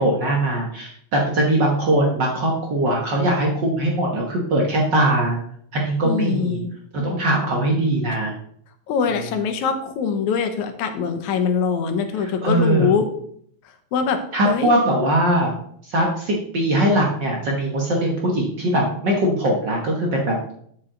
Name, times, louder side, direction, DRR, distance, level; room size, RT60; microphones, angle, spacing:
voice 1, 0.0-5.4 5.7-6.6 6.9-8.3 12.2-12.9 14.3-15.6 15.8-20.5, right 1 dB, 50° right, -1 dB, 1.5 m, -21 dB
voice 2, 6.0-6.7 8.9-13.1 13.9-14.2 14.5-14.7, left 6 dB, 80° left, 7 dB, 2.3 m, -23 dB
8.6 x 7.2 x 3.8 m, 0.65 s
omnidirectional pair, 3.3 m